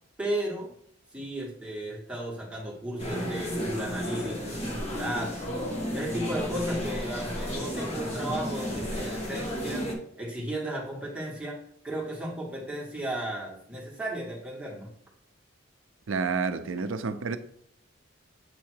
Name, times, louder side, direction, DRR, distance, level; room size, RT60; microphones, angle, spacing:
voice 1, 0.2-0.7 1.1-5.5 5.9-11.6 11.8-14.9, right 1 dB, 5° right, 1.5 m, -34 dB
sound 1, 3.0-9.9, equal, 35° left, 1.2 m, -33 dB
voice 2, 16.1-17.4, right 5 dB, 80° right, 0.5 m, -29 dB
7.4 x 2.8 x 4.4 m
head